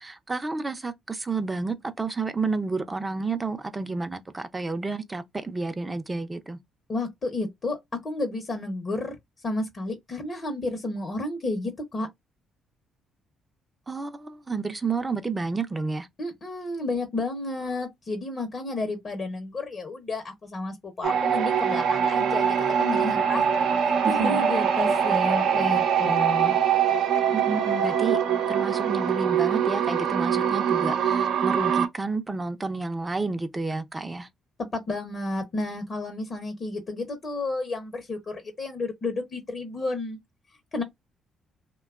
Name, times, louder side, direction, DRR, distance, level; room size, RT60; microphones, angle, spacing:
voice 1, 0.0-6.6 13.9-16.1 24.0-24.4 27.3-28.2 28.5-34.3, right 3 dB, 25° right, 0.5 m, -30 dB
voice 2, 6.9-9.2 9.4-12.1 16.2-23.5 24.1-26.5 34.7-40.2 40.7-40.8, left 2 dB, 45° left, 0.8 m, -31 dB
sound 1, 21.0-31.9, right 8 dB, 75° right, 0.6 m, -23 dB
2.8 x 2.2 x 2.4 m
supercardioid pair, 55°, 0 cm